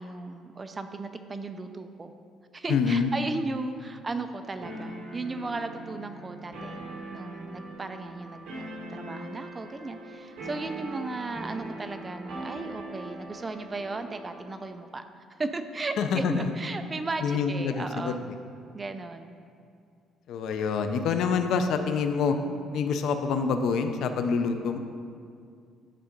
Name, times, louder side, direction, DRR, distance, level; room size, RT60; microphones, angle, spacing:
voice 1, 0.0-2.1 2.5-6.8 7.1-15.0 15.3-18.2 18.7-19.3, right 3 dB, 20° right, 8 dB, 0.4 m, -35 dB
voice 2, 2.7-3.1 16.0-16.5 17.2-18.1 20.3-22.4 22.7-24.8, left 5 dB, 70° left, 7 dB, 0.5 m, -26 dB
sound 1, 4.6-14.7, right 1 dB, 60° right, 1.5 m, -41 dB
9.8 x 3.7 x 5.1 m, 2.3 s
cardioid pair, 140°, 0 cm